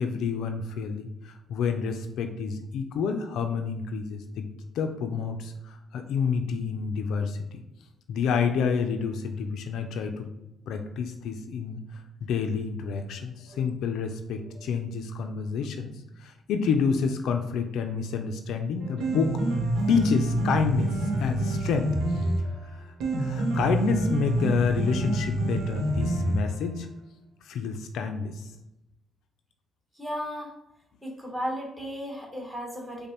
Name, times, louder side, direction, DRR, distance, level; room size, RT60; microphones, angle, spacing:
voice 1, 0.0-7.6 8.1-10.3 10.7-15.9 16.2-19.4 19.9-22.0 22.6-26.9 27.4-28.5, left 6 dB, 80° left, 6 dB, 0.4 m, -29 dB
Piano, 18.8-26.8, right 1 dB, 85° right, 0.6 m, -27 dB
voice 2, 22.2-22.6 29.9-30.5 31.0-33.1, equal, 5° right, -1 dB, 1.2 m, -36 dB
5.2 x 2.1 x 2.9 m, 0.90 s
cardioid pair, 90°, 0 cm